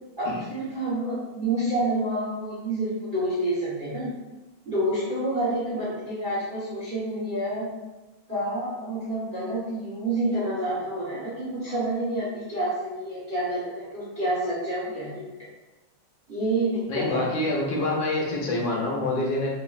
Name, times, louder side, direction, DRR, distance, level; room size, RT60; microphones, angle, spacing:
voice 1, 0.2-4.1 4.7-7.7 8.3-15.3 16.3-17.3, right 1 dB, 35° right, -9 dB, 0.8 m, -28 dB
voice 2, 16.9-19.5, left 2 dB, 70° left, -3 dB, 1.4 m, -26 dB
4.1 x 3.4 x 2.4 m, 1.1 s
omnidirectional pair, 2.3 m